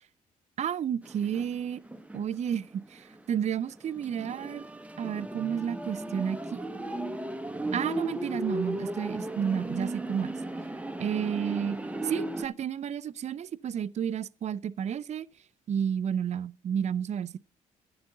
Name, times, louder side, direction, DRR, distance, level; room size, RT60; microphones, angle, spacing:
voice 1, 0.6-1.8 2.1-4.6 5.0-6.7 7.7-10.4 11.0-11.8 12.0-15.3 15.7-17.4, right 8 dB, 45° right, 0.4 m, -31 dB
sound 1, 1.0-2.4 2.7-2.8 3.4-12.4, right 1 dB, 10° right, 0.9 m, -35 dB
10.5 x 7.9 x 3.7 m
hypercardioid pair, 50°, 17 cm